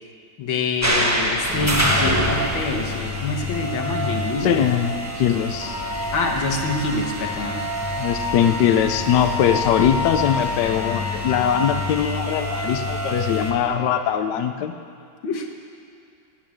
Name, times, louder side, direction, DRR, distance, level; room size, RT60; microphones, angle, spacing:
voice 1, 0.4-4.6 6.1-7.6 15.2-15.5, left 3 dB, 90° left, 3 dB, 2.1 m, -26 dB
sound 1, 0.8-13.5, equal, 10° right, 1.0 m, -26 dB
voice 2, 4.4-5.8 8.0-14.7, left 9 dB, 70° left, 8 dB, 1.2 m, -21 dB
Wind instrument woodwind instrument, 5.6-11.7, left 3 dB, 75° right, 4.2 m, -30 dB
15.5 x 8.8 x 7.7 m, 2.4 s
omnidirectional pair, 2.1 m